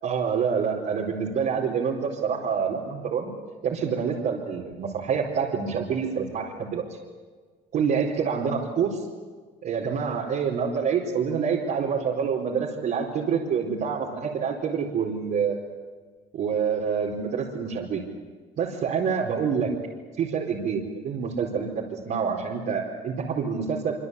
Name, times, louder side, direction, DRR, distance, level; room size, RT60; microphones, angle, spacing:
voice 1, 0.0-3.3 3.6-6.8 7.7-9.0 9.6-15.6 16.3-18.0 18.6-19.7 20.2-23.9, right 6 dB, 65° right, -4 dB, 4.6 m, -27 dB
25.5 x 25.5 x 8.5 m, 1.5 s
cardioid pair, 110°, 17 cm